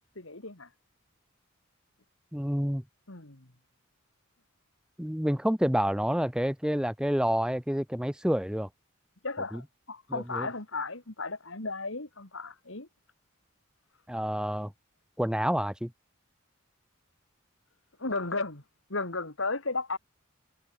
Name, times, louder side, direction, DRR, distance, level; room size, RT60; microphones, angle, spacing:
voice 1, 0.2-0.7 3.1-3.5 9.2-12.9 18.0-18.6 18.9-20.0, left 3 dB, 65° left, 3.0 m, -34 dB
voice 2, 2.3-2.8 5.0-8.7 9.5-9.6 10.1-10.5 14.1-14.7 15.2-15.9, equal, 5° right, 1.2 m, -28 dB
head